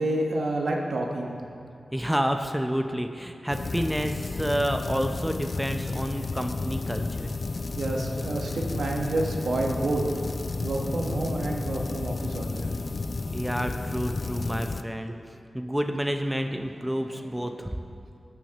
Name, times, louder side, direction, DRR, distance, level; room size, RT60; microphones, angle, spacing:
voice 1, 0.0-1.3 7.7-10.0 10.6-12.8, right 2 dB, 75° right, 0 dB, 1.1 m, -29 dB
voice 2, 1.9-7.3 13.3-15.1 15.5-18.1, equal, 5° right, 5 dB, 0.5 m, -29 dB
sound 1, 3.5-14.8, left 3 dB, 55° left, 0.3 m, -32 dB
16.0 x 6.1 x 2.9 m, 2.4 s
cardioid pair, 50°, 0 cm